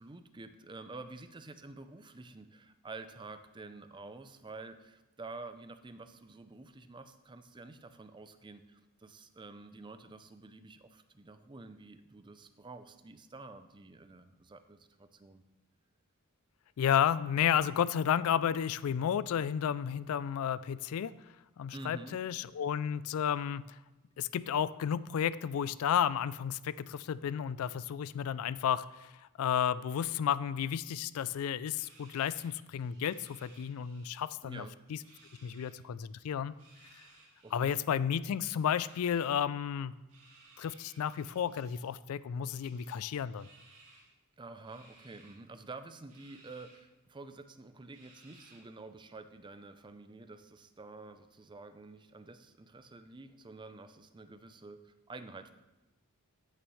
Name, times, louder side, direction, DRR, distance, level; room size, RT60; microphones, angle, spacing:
voice 1, 0.0-15.4 21.7-22.2 34.4-34.8 37.1-37.8 44.4-55.5, right 3 dB, 20° right, 10 dB, 0.5 m, -49 dB
voice 2, 16.8-21.1 21.6-23.8 24.2-29.1 29.4-35.0 35.4-36.5 37.5-39.9 40.6-43.5, left 8 dB, 70° left, 17 dB, 0.3 m, -32 dB
sound 1, 31.7-34.3 34.5-35.7 36.5-37.8 38.6-39.4 40.1-42.0 42.4-44.1 44.6-45.4 46.1-46.8 47.2-47.3 47.9-48.8, right 3 dB, 75° right, 2.3 m, -61 dB
14.5 x 6.3 x 3.1 m, 1.1 s
head